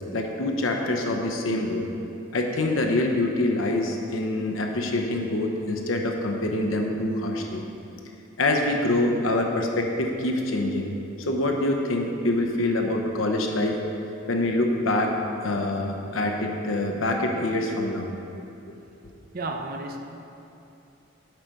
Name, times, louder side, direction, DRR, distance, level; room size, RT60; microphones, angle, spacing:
voice 1, 0.1-1.8 2.3-7.6 8.4-10.9 11.2-13.8 14.3-15.1 15.4-18.1, left 2 dB, 80° left, 2 dB, 0.9 m, -25 dB
voice 2, 19.3-20.0, right 2 dB, 50° right, 4 dB, 0.6 m, -32 dB
7.9 x 5.3 x 4.7 m, 2.9 s
head